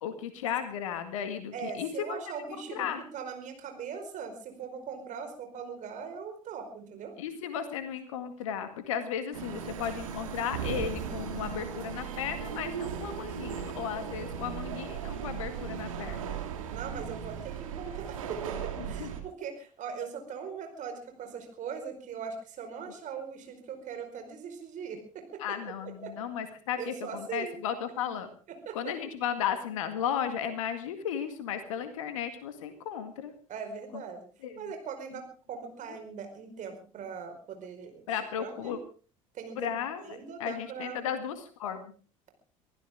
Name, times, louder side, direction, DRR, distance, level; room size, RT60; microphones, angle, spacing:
voice 1, 0.0-2.1 2.7-3.0 7.2-16.3 19.0-19.1 25.4-28.3 28.7-33.3 34.4-34.6 38.1-38.8 39.6-41.9, left 8 dB, 70° left, 9 dB, 1.9 m, -35 dB
voice 2, 1.5-2.8 3.1-7.1 16.7-25.6 26.0-26.1 26.8-27.6 28.6-28.8 33.5-34.3 34.6-38.8 39.3-41.0, right 6 dB, 45° right, 6 dB, 4.9 m, -40 dB
sound 1, 9.3-19.2, right 8 dB, 75° right, 2.6 m, -37 dB
24.5 x 15.5 x 3.6 m, 0.38 s
figure-of-eight pair, 60°, 17 cm